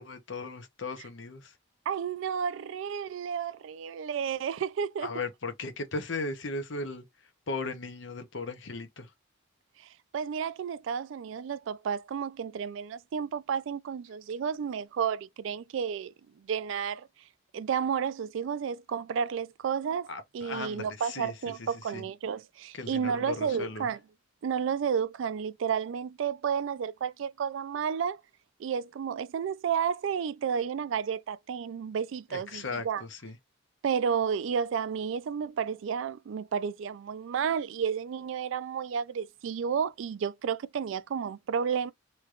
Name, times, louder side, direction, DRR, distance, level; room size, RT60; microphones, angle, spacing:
voice 1, 0.0-1.6 5.0-7.1 7.5-9.1 20.1-22.0 22.7-23.9 32.3-33.4, left 3 dB, 70° left, 0.8 m, -37 dB
voice 2, 1.9-5.1 10.1-16.1 16.5-17.1 17.5-20.1 20.3-24.0 24.4-28.2 28.6-33.0 33.8-41.9, right 7 dB, 75° right, 0.3 m, -31 dB
3.2 x 2.9 x 2.4 m
head